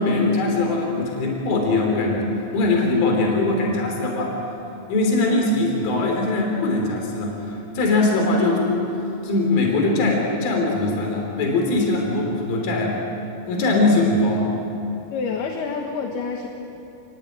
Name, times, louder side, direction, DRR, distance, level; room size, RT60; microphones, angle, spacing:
voice 1, 0.0-2.3 2.5-4.4 4.9-8.7 9.2-13.0 13.5-14.5, left 2 dB, 65° left, 1 dB, 5.0 m, -21 dB
voice 2, 15.1-16.5, left 5 dB, 85° left, 2 dB, 3.5 m, -27 dB
28.5 x 21.5 x 9.1 m, 2.9 s
omnidirectional pair, 4.5 m